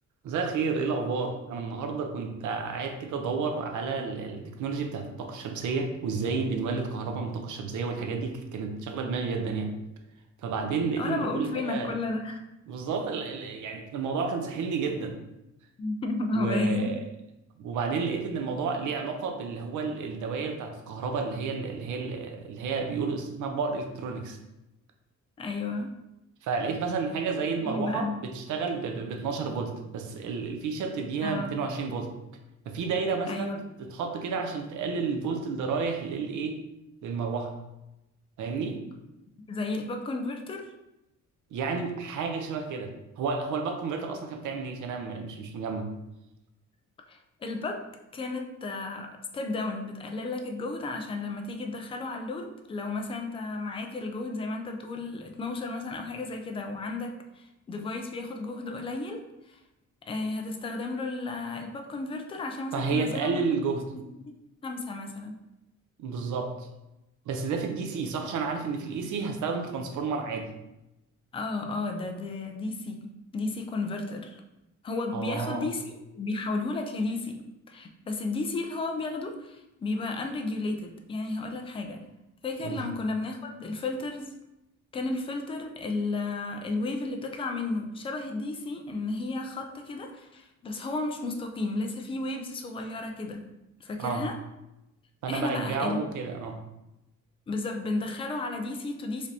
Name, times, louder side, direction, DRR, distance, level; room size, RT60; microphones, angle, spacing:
voice 1, 0.2-9.7 10.4-11.9 12.7-15.2 16.3-17.0 17.6-24.4 26.4-32.1 32.7-36.6 37.0-37.5 38.4-38.8 41.5-45.9 62.7-63.8 66.0-66.7 67.3-70.5 75.1-75.7 82.6-82.8 94.0-94.3 95.2-96.6, right 4 dB, 75° right, 4 dB, 0.7 m, -31 dB
voice 2, 11.0-12.4 15.8-16.9 25.4-25.9 27.4-28.2 31.2-31.6 33.3-33.6 39.5-40.7 47.1-47.8 48.1-59.6 60.1-63.5 63.9-64.3 64.6-65.4 71.3-74.4 74.8-77.4 77.7-82.0 82.4-84.3 84.9-93.5 93.8-94.4 95.3-96.0 97.5-99.3, left 2 dB, 20° left, 4 dB, 0.3 m, -33 dB
5.0 x 3.3 x 2.7 m, 0.93 s
cardioid pair, 175°, 31 cm